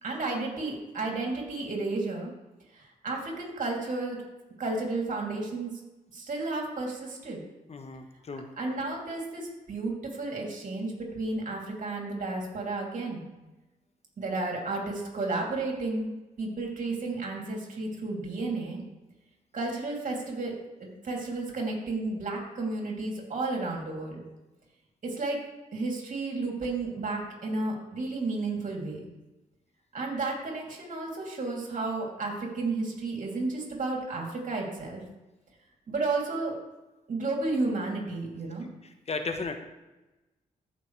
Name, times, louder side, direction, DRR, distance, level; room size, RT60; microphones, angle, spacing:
voice 1, 0.0-2.3 2.7-4.2 4.6-5.7 6.1-7.4 8.6-13.3 14.2-16.1 16.4-18.8 19.5-20.5 21.0-24.2 25.0-25.4 25.7-29.0 29.9-35.0 35.9-36.5 37.1-38.7, right 3 dB, 60° right, -1 dB, 3.0 m, -32 dB
voice 2, 7.7-8.5 38.8-39.6, left 4 dB, 45° left, 6 dB, 1.2 m, -35 dB
14.5 x 5.7 x 3.3 m, 1.1 s
cardioid pair, 60°, 15 cm